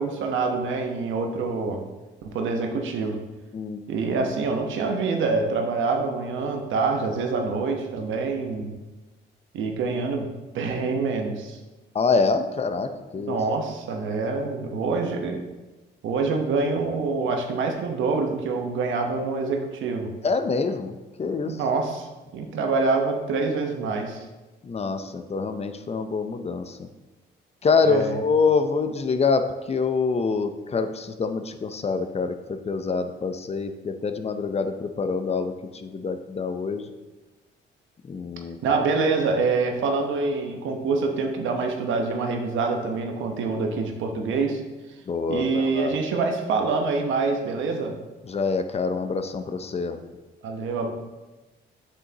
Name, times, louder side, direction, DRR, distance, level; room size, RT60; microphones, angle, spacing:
voice 1, 0.0-1.8 2.2-3.2 3.9-8.7 9.5-11.6 13.1-15.5 16.0-20.1 21.4-24.2 27.8-28.2 38.6-44.6 45.3-48.0 50.4-50.9, right 4 dB, 80° right, 3 dB, 1.0 m, -26 dB
voice 2, 11.9-13.4 20.2-21.6 24.6-26.9 27.6-36.9 38.1-38.7 45.1-46.0 48.2-50.0, left 4 dB, 30° left, 8 dB, 0.6 m, -26 dB
7.6 x 6.4 x 2.9 m, 1.1 s
cardioid pair, 90°, 20 cm